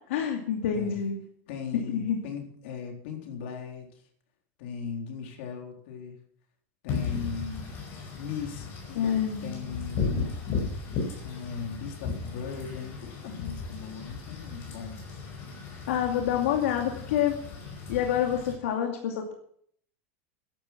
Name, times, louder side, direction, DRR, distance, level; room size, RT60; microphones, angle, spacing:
voice 1, 0.1-1.2 1.7-2.2 9.0-9.6 15.9-17.4 17.9-19.3, left 9 dB, 80° left, 2 dB, 2.4 m, -27 dB
voice 2, 1.5-4.0 4.6-6.2 6.8-7.8 8.1-10.4 11.2-15.0, left 6 dB, 55° left, 2 dB, 4.0 m, -38 dB
Wind / Rain, 6.9-18.5, left 5 dB, 30° left, 5.1 m, -36 dB
14.0 x 11.5 x 6.0 m, 0.63 s
supercardioid pair, 180°, 7 cm